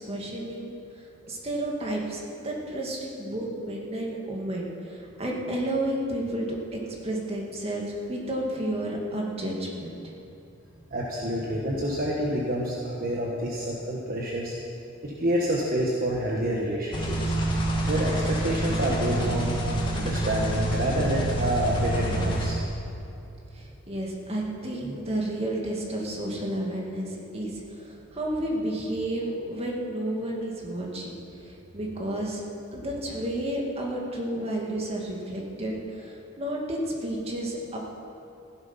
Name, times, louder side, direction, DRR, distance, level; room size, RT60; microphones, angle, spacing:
voice 1, 0.0-10.1 23.5-32.4 32.7-37.8, right 1 dB, 30° right, -2 dB, 2.2 m, -31 dB
voice 2, 10.9-14.5 15.0-17.3 17.8-19.5 19.9-22.6 24.8-24.9, right 1 dB, 45° right, -3 dB, 1.4 m, -28 dB
sound 1, 16.9-22.5, right 1 dB, 25° left, 2.2 m, -27 dB
15.5 x 11.5 x 5.7 m, 2.8 s
head